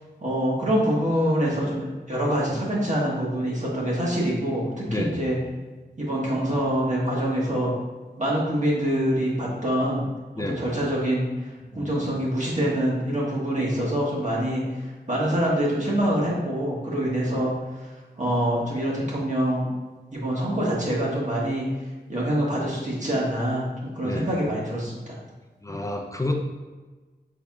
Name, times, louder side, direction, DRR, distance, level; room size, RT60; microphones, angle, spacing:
voice 1, 0.2-5.4 6.0-7.7 8.2-10.0 10.5-11.2 11.8-14.6 15.1-17.5 18.2-19.7 20.1-21.7 22.1-23.7 23.9-25.1, equal, 40° right, -5 dB, 1.5 m, -25 dB
voice 2, 4.9-5.2 10.4-10.6 11.7-12.0 24.0-24.3 25.6-26.4, left 1 dB, 20° left, 2 dB, 0.5 m, -29 dB
5.7 x 4.0 x 2.3 m, 1.3 s
wide cardioid pair, 70°, 18 cm